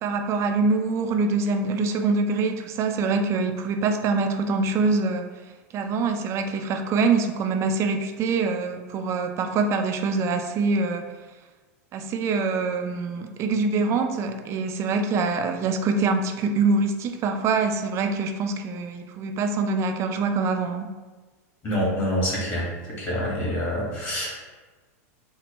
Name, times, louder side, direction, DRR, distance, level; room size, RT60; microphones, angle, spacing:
voice 1, 0.0-5.3 5.7-11.1 11.9-20.9, right 4 dB, 35° right, 6 dB, 0.4 m, -24 dB
voice 2, 21.6-22.7 23.0-24.4, equal, 30° left, -4 dB, 1.5 m, -26 dB
4.3 x 2.1 x 3.0 m, 1.3 s
supercardioid pair, 125°, 8 cm